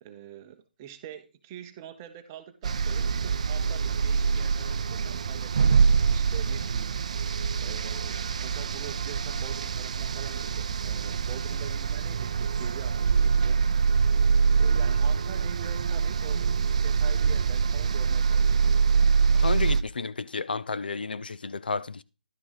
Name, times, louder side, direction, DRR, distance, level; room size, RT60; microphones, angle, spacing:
voice 1, 0.0-6.9 7.6-13.6 14.6-18.6, right 10 dB, 20° right, 0.7 m, -45 dB
sound 1, 2.6-19.8, right 5 dB, 45° right, 0.4 m, -25 dB
voice 2, 19.3-22.0, left 4 dB, 80° left, 0.5 m, -32 dB
11.0 x 6.0 x 4.0 m
hypercardioid pair, 165°, 5 cm